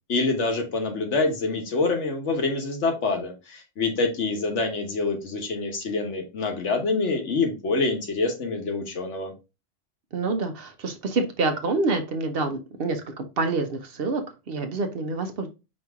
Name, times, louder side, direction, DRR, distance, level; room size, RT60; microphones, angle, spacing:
voice 1, 0.1-9.3, left 3 dB, 80° left, 4 dB, 1.4 m, -26 dB
voice 2, 10.1-14.2 14.5-15.5, right 3 dB, 55° right, 6 dB, 0.9 m, -27 dB
5.2 x 2.9 x 3.5 m, 0.27 s
omnidirectional pair, 1.2 m